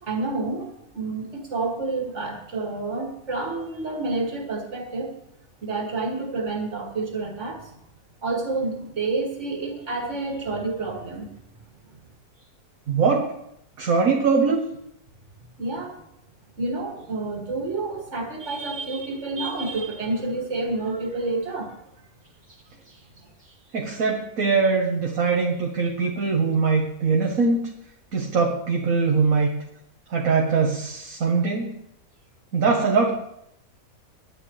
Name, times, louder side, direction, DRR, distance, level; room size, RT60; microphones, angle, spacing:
voice 1, 0.0-5.2 5.6-7.8 8.2-11.3 15.6-16.0 16.6-21.7 23.2-23.3, right 3 dB, 50° right, 1 dB, 2.6 m, -29 dB
voice 2, 12.9-13.3 13.8-14.6 23.7-27.7 28.1-29.5 30.1-31.7 32.5-33.1, right 4 dB, 65° right, 1 dB, 1.6 m, -22 dB
17.5 x 11.0 x 3.2 m, 0.76 s
omnidirectional pair, 1.6 m